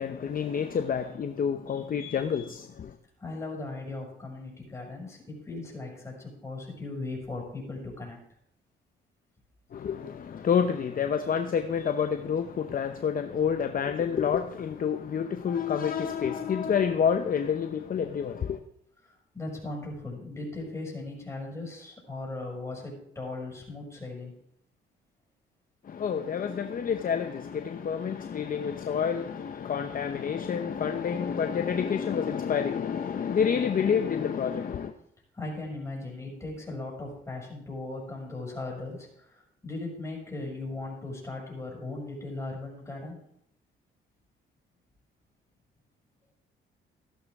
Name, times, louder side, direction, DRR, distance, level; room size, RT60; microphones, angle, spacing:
voice 1, 0.0-2.9 9.7-18.6 25.9-34.9, left 7 dB, 45° left, 7 dB, 0.8 m, -28 dB
voice 2, 3.2-8.2 19.0-24.3 35.4-43.2, left 2 dB, 15° left, -1 dB, 6.4 m, -38 dB
15.0 x 11.5 x 3.6 m, 0.72 s
cardioid pair, 90°, 20 cm